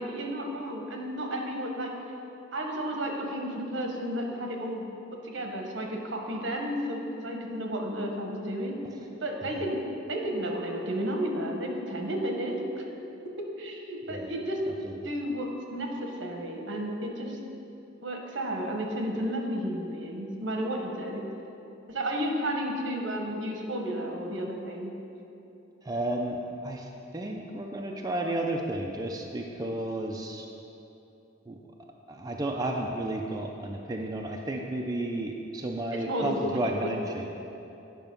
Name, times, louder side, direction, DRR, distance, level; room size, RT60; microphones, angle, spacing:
voice 1, 0.0-1.9 2.5-4.8 5.2-8.8 9.2-9.8 10.1-12.6 13.6-14.6 15.0-17.4 18.0-21.2 21.9-24.9 36.1-36.9, equal, 70° right, 2 dB, 1.1 m, -32 dB
voice 2, 14.7-15.0 25.8-30.5 31.5-31.6 32.1-37.3, right 1 dB, 20° right, 0 dB, 0.4 m, -32 dB
9.1 x 5.5 x 5.3 m, 2.9 s
head